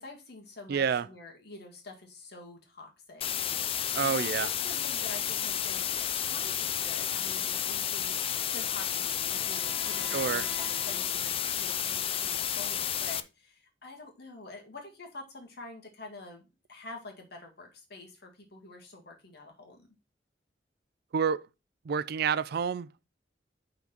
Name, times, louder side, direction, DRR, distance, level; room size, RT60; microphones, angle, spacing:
voice 1, 0.0-19.9, left 2 dB, 65° left, 1.9 m, -47 dB
voice 2, 0.7-1.1 3.9-4.5 10.1-10.5 21.1-21.5 21.9-23.0, right 6 dB, 60° right, 0.4 m, -29 dB
sound 1, 3.2-13.2, left 9 dB, 30° left, 0.4 m, -31 dB
Wind instrument woodwind instrument, 8.3-11.9, equal, 5° left, 1.4 m, -50 dB
5.9 x 3.9 x 5.8 m
head